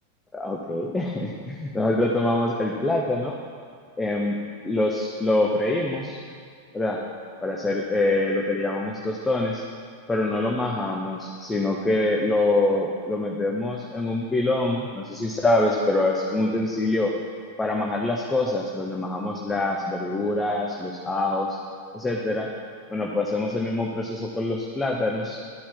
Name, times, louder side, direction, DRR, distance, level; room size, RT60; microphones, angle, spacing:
voice 1, 0.3-3.4 4.0-4.4 4.6-6.2 6.7-7.0 7.4-9.6 10.1-17.1 17.6-21.6 21.9-22.5 22.9-25.4, left 2 dB, 10° left, -1 dB, 0.8 m, -25 dB
12.5 x 4.2 x 5.8 m, 2.2 s
figure-of-eight pair, 90°, 0 cm